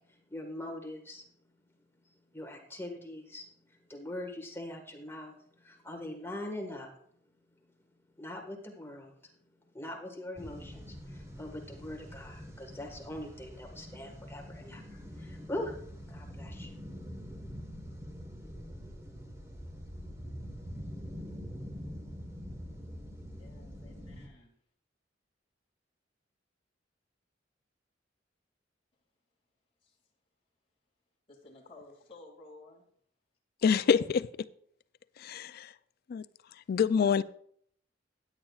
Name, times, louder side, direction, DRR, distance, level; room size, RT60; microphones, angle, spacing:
voice 1, 0.3-1.2 2.3-3.4 3.9-6.9 8.2-9.1 9.7-15.7 16.1-16.7, left 1 dB, 15° left, 1.5 m, -42 dB
sound 1, 10.4-24.3, equal, 15° right, 1.4 m, -45 dB
voice 2, 23.3-24.5 31.3-32.9, left 2 dB, 30° left, 2.3 m, -54 dB
voice 3, 33.6-34.5 35.2-35.7 36.1-36.2 36.7-37.2, left 6 dB, 55° left, 0.3 m, -26 dB
15.5 x 10.0 x 2.4 m
head